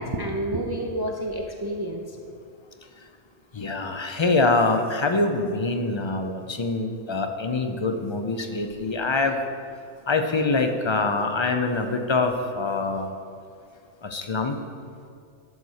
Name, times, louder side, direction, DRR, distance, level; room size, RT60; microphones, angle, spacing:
voice 1, 0.0-2.2, right 1 dB, 30° right, 1 dB, 0.5 m, -29 dB
voice 2, 3.5-9.4 10.1-13.1 14.0-14.6, left 3 dB, 40° left, 6 dB, 0.4 m, -24 dB
12.0 x 4.1 x 6.4 m, 2.3 s
omnidirectional pair, 1.2 m